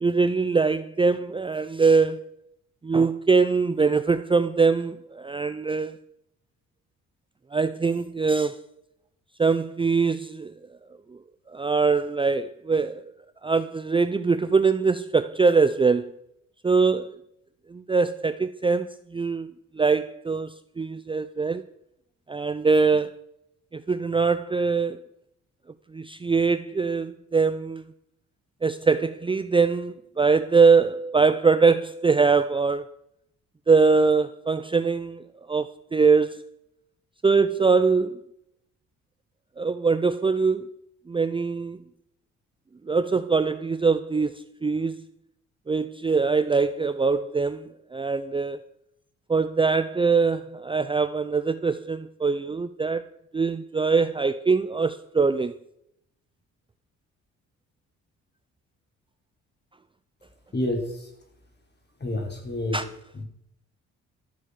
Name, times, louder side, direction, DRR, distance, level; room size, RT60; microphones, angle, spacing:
voice 1, 0.0-2.3 2.8-6.0 7.5-8.6 9.4-10.5 11.5-13.0 13.4-16.1 16.6-17.2 17.7-21.6 22.3-23.1 23.7-25.0 25.9-27.8 28.6-32.9 33.7-36.4 37.2-38.2 39.6-40.7 41.1-41.8 42.9-45.0 45.7-48.6 49.3-53.1 53.3-55.5 62.7-62.8, right 4 dB, 15° right, 0.6 m, -22 dB
voice 2, 60.5-61.1 62.0-62.8 63.1-63.3, left 1 dB, 35° left, 4.7 m, -29 dB
13.5 x 8.5 x 6.8 m
cardioid pair, 90°, 30 cm